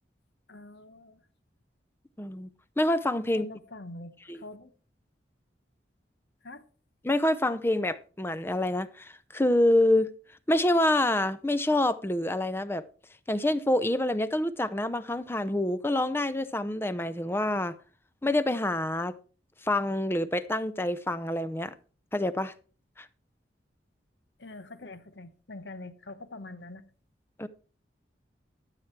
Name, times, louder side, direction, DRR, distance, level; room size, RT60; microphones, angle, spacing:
voice 1, 0.5-1.2 3.3-4.7 6.4-6.6 24.4-26.8, left 2 dB, 75° left, 1.0 m, -44 dB
voice 2, 2.2-2.5 2.8-3.5 4.3-4.4 7.0-10.1 10.5-12.8 13.3-17.8 18.2-19.1 19.6-21.7 22.1-22.5 23.0-23.1 27.4-27.5, left 1 dB, 15° left, 0.5 m, -26 dB
13.0 x 7.3 x 4.6 m
head